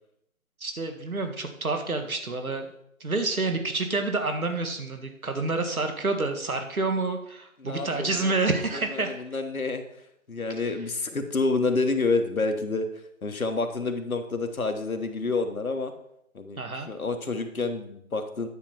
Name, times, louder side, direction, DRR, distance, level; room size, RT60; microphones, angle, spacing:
voice 1, 0.6-2.7 3.0-9.2 10.5-10.6 16.6-16.9, right 3 dB, 80° right, 6 dB, 1.7 m, -28 dB
voice 2, 7.6-8.3 8.7-9.8 10.3-12.9 13.2-15.9 16.3-16.6 16.9-18.5, left 3 dB, 80° left, 6 dB, 1.4 m, -28 dB
10.0 x 6.5 x 4.4 m, 0.76 s
figure-of-eight pair, 160°, 42 cm